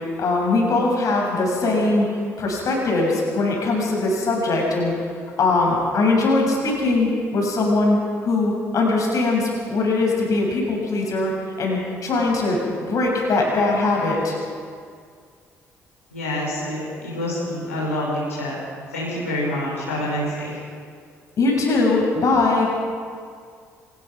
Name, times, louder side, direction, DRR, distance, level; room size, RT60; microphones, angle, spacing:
voice 1, 0.2-4.9 5.4-11.3 11.6-12.6 12.9-14.3 21.4-22.7, left 2 dB, 50° left, -1 dB, 7.1 m, -21 dB
voice 2, 16.1-18.6 18.9-20.6, left 1 dB, 85° left, -7 dB, 6.3 m, -27 dB
24.5 x 19.5 x 6.0 m, 2.1 s
figure-of-eight pair, 45°, 7 cm